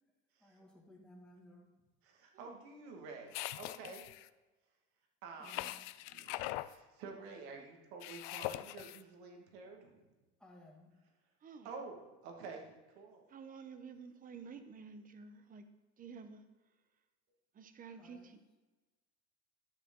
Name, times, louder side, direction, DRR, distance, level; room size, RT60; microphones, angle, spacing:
voice 1, 0.4-1.7 5.4-5.8 10.4-10.9 17.9-18.3, left 1 dB, ahead, -3 dB, 1.7 m, -59 dB
voice 2, 2.0-4.1 5.2-5.7 6.1-10.1 11.6-13.3, right 4 dB, 85° right, 2 dB, 1.9 m, -50 dB
sound 1, 3.3-4.3 5.4-6.7 8.0-9.0, left 17 dB, 70° left, 0.4 m, -42 dB
voice 3, 13.3-15.7 16.0-16.4 17.5-18.4, right 5 dB, 25° right, 10 dB, 0.8 m, -51 dB
11.5 x 6.7 x 3.8 m, 1.2 s
supercardioid pair, 130°, 31 cm